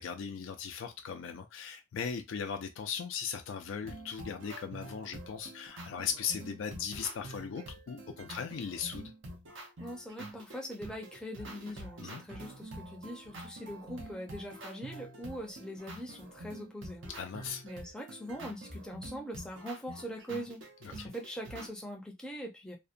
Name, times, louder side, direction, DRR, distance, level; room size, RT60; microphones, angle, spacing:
voice 1, 0.0-9.1 12.0-12.2 17.2-17.6 20.8-21.1, left 7 dB, 90° left, 0.4 m, -38 dB
sound 1, 3.8-21.7, right 1 dB, 85° right, 0.7 m, -47 dB
voice 2, 9.8-17.1 17.6-20.6 20.9-22.8, equal, 5° left, 0.5 m, -42 dB
2.6 x 2.1 x 2.4 m
head